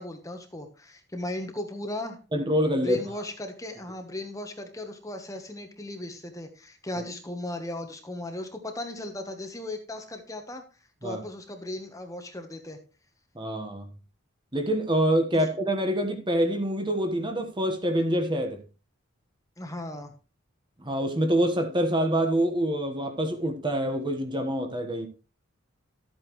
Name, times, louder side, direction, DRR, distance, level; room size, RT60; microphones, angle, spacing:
voice 1, 0.0-2.2 2.8-10.6 11.0-12.8 15.3-15.5 19.6-20.1, left 1 dB, 15° left, 1.1 m, -36 dB
voice 2, 2.3-3.0 11.0-11.2 13.3-13.9 14.5-18.6 20.8-25.1, right 1 dB, 20° right, 1.3 m, -26 dB
13.0 x 8.6 x 3.1 m
head